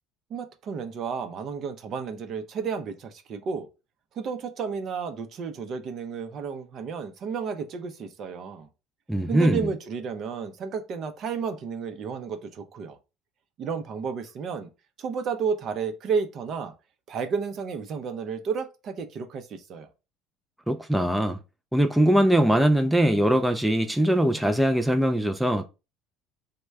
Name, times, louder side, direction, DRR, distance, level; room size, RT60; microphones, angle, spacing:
voice 1, 0.3-3.7 4.1-8.7 9.3-13.0 13.6-14.7 15.0-16.7 17.1-19.9, right 6 dB, 50° right, 0.6 m, -32 dB
voice 2, 9.1-9.7 20.7-21.4 21.7-25.7, right 1 dB, 5° right, 0.4 m, -21 dB
3.1 x 2.2 x 3.3 m
supercardioid pair, 95°, 0 cm